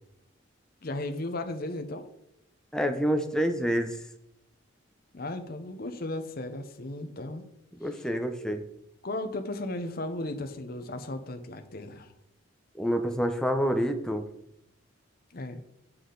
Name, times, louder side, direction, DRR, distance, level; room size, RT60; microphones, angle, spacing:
voice 1, 0.8-2.1 5.1-7.4 9.0-12.1 15.3-15.6, left 2 dB, 45° left, 7 dB, 0.8 m, -35 dB
voice 2, 2.7-4.0 7.8-8.6 12.7-14.2, equal, 5° left, 5 dB, 0.7 m, -27 dB
8.3 x 7.3 x 3.9 m, 0.78 s
head